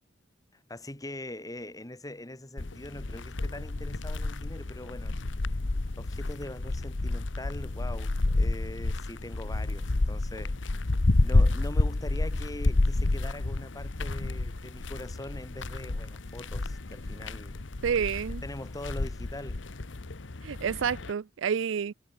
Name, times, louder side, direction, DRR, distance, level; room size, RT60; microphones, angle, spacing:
voice 1, 0.7-5.3 6.0-10.5 11.2-17.6 18.4-19.6, left 1 dB, 20° left, 2.3 m, -42 dB
steps sand river NY, 2.6-21.1, left 2 dB, 75° left, 1.1 m, -30 dB
voice 2, 17.8-18.4 20.4-21.9, right 7 dB, 85° right, 0.4 m, -29 dB
head